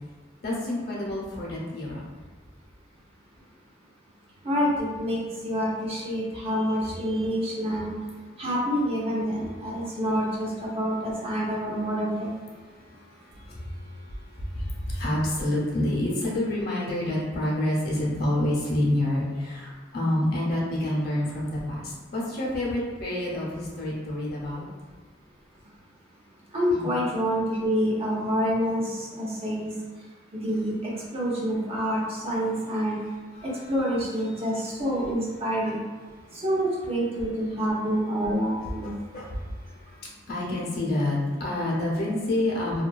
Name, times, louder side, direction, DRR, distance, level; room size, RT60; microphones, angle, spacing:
voice 1, 0.4-2.0 12.6-24.6 26.7-26.9 33.4-33.5 36.2-36.4 38.6-42.8, left 1 dB, 55° left, -4 dB, 0.7 m, -28 dB
voice 2, 4.4-7.9 8.4-12.3 26.5-29.7 30.3-30.7 31.1-33.0 33.4-35.8 36.3-38.9, equal, 35° right, -5 dB, 0.5 m, -27 dB
2.6 x 2.2 x 2.2 m, 1.4 s
head